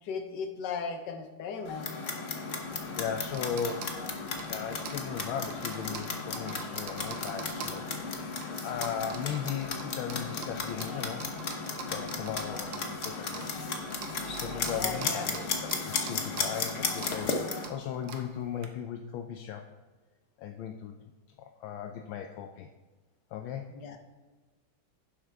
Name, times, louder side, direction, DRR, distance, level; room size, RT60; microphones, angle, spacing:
voice 1, 0.0-1.9 14.6-15.3 23.7-24.0, left 5 dB, 60° left, 6 dB, 1.5 m, -37 dB
Clock, 1.6-17.7, left 4 dB, 45° left, 1.1 m, -35 dB
sound 1, 2.6-18.7, right 5 dB, 65° right, 1.5 m, -46 dB
voice 2, 3.0-4.0 4.5-8.3 8.6-11.2 11.9-13.7 14.3-19.7 20.4-21.0 21.4-22.7 23.3-23.7, left 8 dB, 75° left, 5 dB, 1.4 m, -37 dB
11.0 x 7.4 x 3.5 m, 1.3 s
omnidirectional pair, 2.3 m